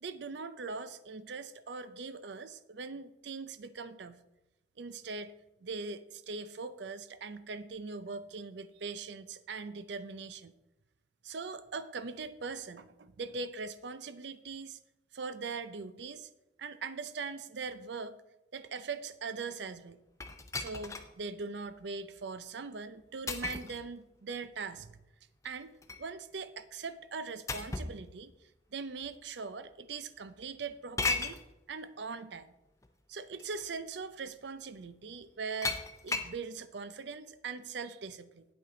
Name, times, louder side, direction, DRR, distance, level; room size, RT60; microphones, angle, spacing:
voice 1, 0.0-4.2 4.8-5.3 5.6-10.5 11.2-14.8 15.1-16.3 16.6-18.2 18.5-20.0 20.5-25.0 25.4-28.3 28.7-31.4 31.7-32.5 33.1-38.5, right 4 dB, 70° right, 14 dB, 0.5 m, -41 dB
sound 1, 20.2-21.1 21.7-21.8 23.3-23.8 25.4-26.1 27.5-28.0 29.0-29.1 31.0-31.4 32.8-32.9 33.4-33.7 35.6-36.4, left 3 dB, 15° left, 0.5 m, -35 dB
8.7 x 8.7 x 3.8 m, 0.96 s
head